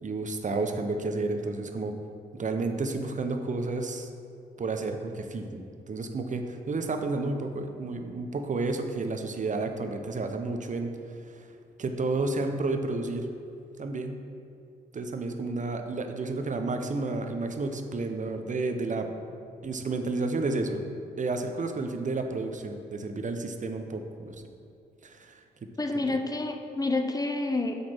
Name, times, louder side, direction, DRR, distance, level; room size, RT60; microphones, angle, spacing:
voice 1, 0.0-1.9 2.3-4.1 4.6-10.9 11.2-11.5 11.8-13.3 13.8-14.2 14.9-19.1 19.6-20.8 21.2-24.4 25.0-25.4 26.1-26.2, right 3 dB, 40° right, 6 dB, 0.9 m, -31 dB
voice 2, 25.8-27.7, left 2 dB, 20° left, 5 dB, 1.0 m, -28 dB
8.3 x 4.2 x 6.1 m, 2.4 s
hypercardioid pair, 40°, 21 cm